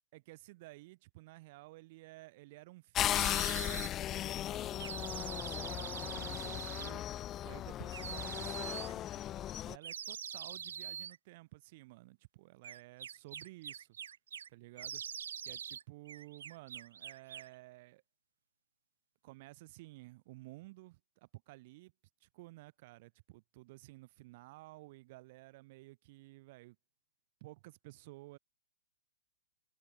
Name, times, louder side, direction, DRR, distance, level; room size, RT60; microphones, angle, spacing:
voice 1, 0.1-7.0 7.4-9.2 9.6-14.0 14.5-15.0 15.4-18.0 19.2-21.9 22.2-26.8 27.4-28.4, right 20 dB, 30° right, 4.1 m, -54 dB
sound 1, 2.9-9.8, left 12 dB, 15° left, 0.6 m, -37 dB
sound 2, 3.1-3.9 4.8-6.9 7.9-8.9 9.8-11.2 12.6-14.5 14.8-17.5, right 8 dB, 70° right, 1.8 m, -44 dB
hypercardioid pair, 180°, 0 cm